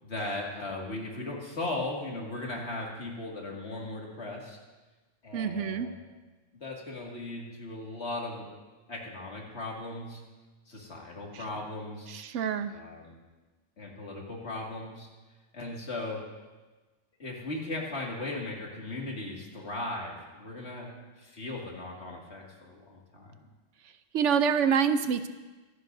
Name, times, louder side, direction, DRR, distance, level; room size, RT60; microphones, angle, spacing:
voice 1, 0.0-4.6 5.2-6.0 6.6-8.5 8.9-10.2 10.7-12.1 12.7-13.2 13.8-15.1 15.5-16.2 17.2-23.3, left 2 dB, 60° left, -2 dB, 2.5 m, -37 dB
voice 2, 5.3-5.9 12.1-12.7 24.1-25.3, right 7 dB, 75° right, 10 dB, 1.0 m, -26 dB
23.5 x 11.0 x 2.7 m, 1.2 s
omnidirectional pair, 1.3 m